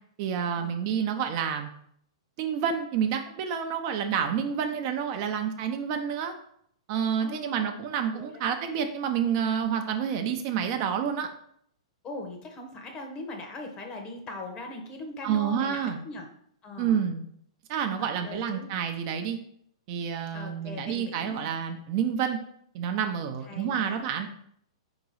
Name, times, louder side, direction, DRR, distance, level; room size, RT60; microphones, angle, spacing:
voice 1, 0.2-1.7 2.4-6.3 6.9-11.3 15.2-16.0 16.8-17.2 17.7-19.4 19.9-22.4 22.7-24.3, right 8 dB, 45° right, 5 dB, 0.5 m, -29 dB
voice 2, 7.2-7.7 8.1-8.5 12.0-16.3 16.6-17.0 17.8-18.7 20.3-21.5 23.5-24.0, left 2 dB, 30° left, 3 dB, 0.9 m, -40 dB
4.5 x 2.9 x 4.0 m, 0.67 s
hypercardioid pair, 120°, 3 cm